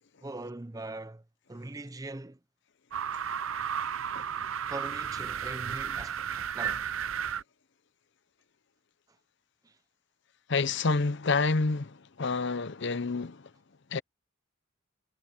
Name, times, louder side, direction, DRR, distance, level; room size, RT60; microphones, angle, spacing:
voice 1, 0.2-1.2 1.5-2.4 4.7-6.9 9.6-9.8, right 2 dB, 15° right, 0.7 m, -41 dB
sound 1, 2.9-7.4, right 8 dB, 85° right, 0.6 m, -33 dB
voice 2, 10.5-13.5 13.9-14.0, left 4 dB, 60° left, 0.7 m, -28 dB
head